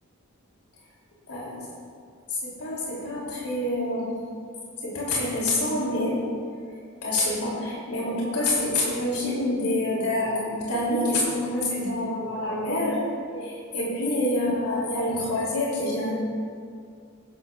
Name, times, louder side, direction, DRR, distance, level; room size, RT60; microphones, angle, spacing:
voice 1, 2.3-4.1 4.8-6.2 7.0-13.0 13.3-16.1, left 1 dB, 80° left, -6 dB, 3.0 m, -27 dB
16.0 x 11.0 x 2.4 m, 2.2 s
head